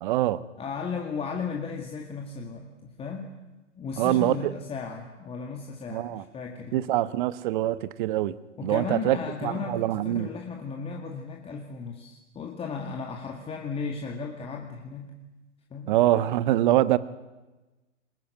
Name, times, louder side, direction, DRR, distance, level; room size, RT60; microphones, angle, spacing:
voice 1, 0.0-0.4 4.0-4.5 5.9-6.2 6.7-8.4 8.6-9.2 9.4-10.3 15.9-17.0, right 14 dB, 40° right, 17 dB, 1.1 m, -24 dB
voice 2, 0.6-3.3 3.8-6.8 8.6-15.2 15.7-16.0, left 5 dB, 15° left, 2 dB, 2.0 m, -35 dB
23.5 x 20.5 x 9.1 m, 1.1 s
figure-of-eight pair, 105°, 36 cm